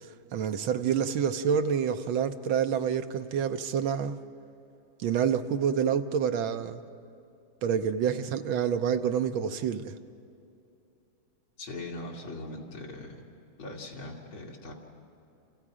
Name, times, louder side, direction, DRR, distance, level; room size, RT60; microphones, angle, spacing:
voice 1, 0.3-4.2 5.0-6.8 7.6-9.9, right 7 dB, 90° right, 8 dB, 1.7 m, -27 dB
voice 2, 11.6-13.2 13.6-14.7, left 2 dB, 85° left, -2 dB, 3.5 m, -40 dB
29.5 x 28.0 x 5.0 m, 2.6 s
omnidirectional pair, 2.2 m